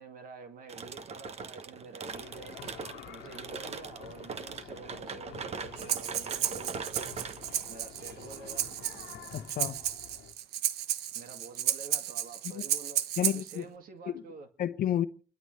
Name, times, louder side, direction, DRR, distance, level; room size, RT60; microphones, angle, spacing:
voice 1, 0.0-2.6 3.1-7.2 7.7-8.7 11.1-14.5, right 4 dB, 55° right, 2.1 m, -48 dB
sound 1, 0.7-9.4, right 5 dB, 40° right, 1.1 m, -42 dB
sound 2, 2.1-10.3, left 11 dB, 90° left, 1.3 m, -50 dB
Breathing, 5.8-13.6, right 11 dB, 75° right, 1.0 m, -33 dB
voice 2, 9.3-9.8 12.5-12.6 13.2-13.7 14.1-14.2 14.6-15.0, left 11 dB, 60° left, 0.9 m, -30 dB
29.5 x 13.0 x 3.3 m
cardioid pair, 110°, 17 cm